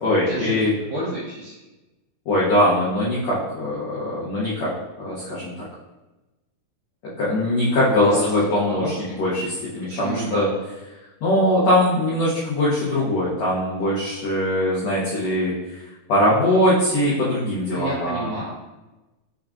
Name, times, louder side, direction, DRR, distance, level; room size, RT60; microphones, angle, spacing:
voice 1, 0.0-0.7 2.2-4.7 5.0-5.5 7.2-10.5 11.2-15.8 16.1-18.3, left 1 dB, 90° left, -8 dB, 1.4 m, -21 dB
voice 2, 0.9-1.6 7.8-9.0 9.9-10.4 17.7-18.4, right 1 dB, 70° right, -7 dB, 1.9 m, -30 dB
6.0 x 3.6 x 2.4 m, 1.1 s
omnidirectional pair, 4.4 m